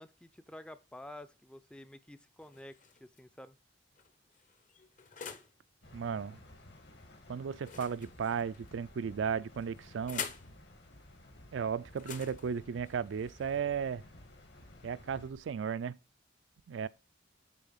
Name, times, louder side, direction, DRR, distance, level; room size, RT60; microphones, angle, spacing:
voice 1, 0.0-3.6, left 1 dB, 5° left, 0.4 m, -50 dB
sound 1, 2.4-3.2 3.9-5.6 7.6-8.7 9.5-10.5 11.9-13.9, left 7 dB, 45° left, 0.8 m, -46 dB
sound 2, 5.8-15.3, left 1 dB, 60° left, 1.7 m, -56 dB
voice 2, 5.9-6.4 7.3-10.2 11.5-14.0 14.8-16.0 16.7-16.9, right 6 dB, 80° right, 0.4 m, -35 dB
sound 3, 8.1-15.5, equal, 85° left, 1.6 m, -60 dB
8.2 x 3.8 x 5.6 m
head